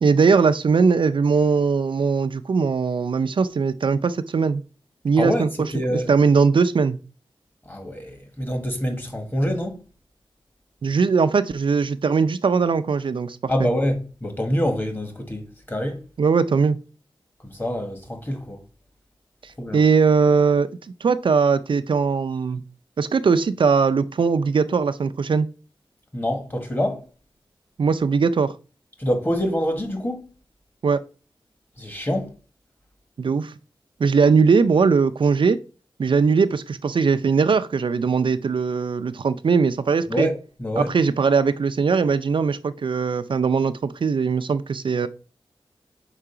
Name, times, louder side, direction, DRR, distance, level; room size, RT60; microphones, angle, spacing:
voice 1, 0.0-4.6 5.0-7.0 10.8-13.7 16.2-16.8 19.4-20.7 21.0-22.6 23.0-25.5 27.8-28.5 30.8-31.0 33.2-33.5 34.0-35.6 36.0-40.3 40.8-45.1, right 5 dB, 65° right, 0.4 m, -20 dB
voice 2, 5.7-6.1 7.7-9.8 13.5-16.0 17.4-18.6 19.6-19.8 26.1-27.1 29.0-30.3 31.8-32.3 40.1-40.9, equal, 20° left, 1.5 m, -26 dB
4.9 x 4.5 x 5.7 m
wide cardioid pair, 105°, 9 cm